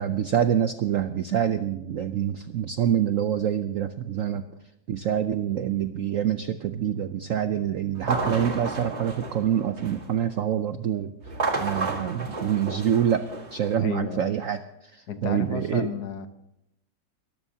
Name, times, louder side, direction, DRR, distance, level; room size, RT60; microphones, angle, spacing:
voice 1, 0.0-4.4 4.9-11.1 11.6-13.2 13.5-15.9, right 9 dB, 70° right, 10 dB, 0.7 m, -26 dB
sound 1, 8.0-10.2 11.2-13.7, right 3 dB, 35° right, 1.8 m, -32 dB
voice 2, 13.8-14.3 15.1-16.3, left 6 dB, 65° left, 10 dB, 1.4 m, -33 dB
23.5 x 14.0 x 2.8 m, 0.82 s
omnidirectional pair, 2.1 m